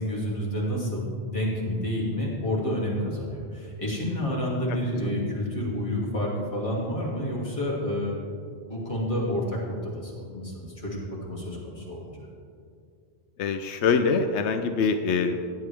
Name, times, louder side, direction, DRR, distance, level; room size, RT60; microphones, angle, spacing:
voice 1, 0.0-8.2 8.5-12.1, equal, 30° left, -6 dB, 2.8 m, -29 dB
voice 2, 13.4-15.5, left 5 dB, 85° left, 7 dB, 0.9 m, -24 dB
16.0 x 9.2 x 3.5 m, 2.4 s
omnidirectional pair, 1.1 m